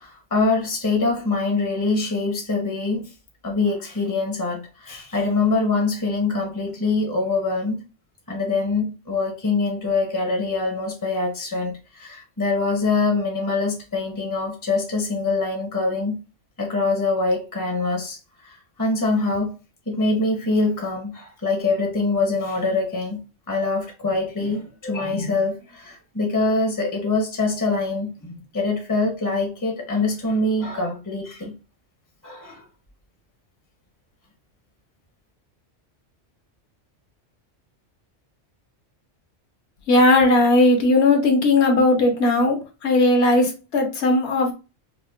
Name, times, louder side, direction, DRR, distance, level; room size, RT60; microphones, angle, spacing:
voice 1, 0.0-3.1 3.4-7.8 8.3-16.2 16.6-19.6 19.9-23.2 23.5-31.5 32.2-32.6, left 3 dB, 20° left, 0.6 m, -24 dB
voice 2, 39.9-42.6 42.8-44.5, left 2 dB, 65° left, 1.1 m, -17 dB
5.0 x 2.1 x 2.3 m
omnidirectional pair, 1.2 m